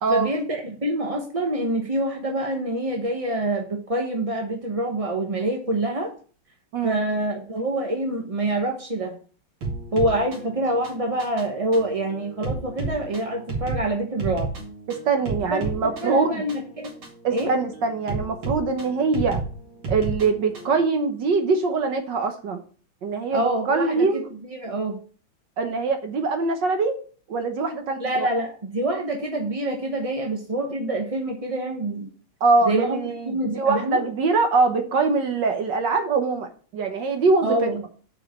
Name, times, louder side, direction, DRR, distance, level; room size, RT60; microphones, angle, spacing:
voice 1, 0.1-6.1 6.8-9.1 9.9-14.5 15.5-16.9 17.3-17.5 23.3-24.1 24.4-25.0 28.0-32.1 32.6-33.0 33.3-34.1 37.4-37.8, right 1 dB, 30° right, 1 dB, 0.7 m, -26 dB
sound 1, 9.6-20.8, right 3 dB, 85° right, 3.4 m, -33 dB
voice 2, 15.0-16.4 17.2-19.4 19.9-22.6 23.0-24.3 25.6-27.0 27.3-28.3 32.4-37.7, right 4 dB, 60° right, 6 dB, 1.7 m, -23 dB
7.9 x 4.7 x 7.2 m, 0.41 s
omnidirectional pair, 2.3 m